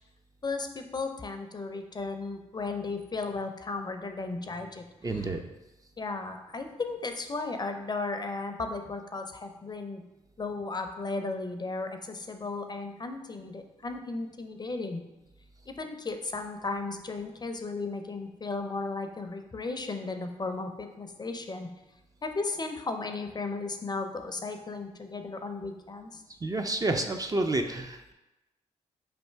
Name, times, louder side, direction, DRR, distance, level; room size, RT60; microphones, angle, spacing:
voice 1, 0.4-4.8 5.1-5.3 6.0-10.0 10.4-15.0 15.7-21.7 22.2-26.2, left 3 dB, 30° left, 6 dB, 0.5 m, -35 dB
voice 2, 5.0-5.4 26.4-28.1, right 2 dB, 25° right, 5 dB, 0.4 m, -29 dB
3.3 x 2.6 x 4.4 m, 0.99 s
supercardioid pair, 55°, 14 cm